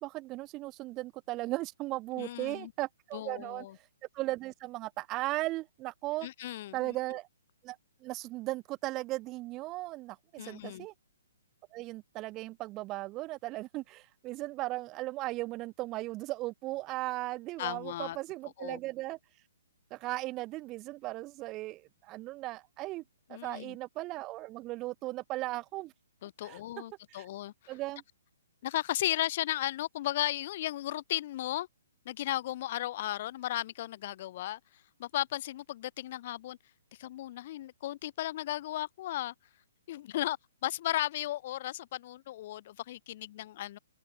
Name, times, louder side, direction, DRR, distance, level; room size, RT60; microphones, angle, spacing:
voice 1, 0.0-3.6 4.1-6.3 6.7-7.3 7.6-7.8 8.0-10.9 11.7-19.2 19.9-23.0 23.3-25.9 26.4-26.6 27.1-27.3 27.7-28.0, right 19 dB, 25° right, 1.3 m, -37 dB
voice 2, 2.1-2.7 3.1-3.8 6.2-6.9 10.4-10.9 17.6-18.2 18.6-18.8 23.3-23.8 26.2-27.7 28.6-31.7 32.0-34.6 35.0-36.6 37.0-39.3 39.9-40.4 40.6-43.8, left 14 dB, 40° left, 1.7 m, -35 dB
figure-of-eight pair, 125°, 0 cm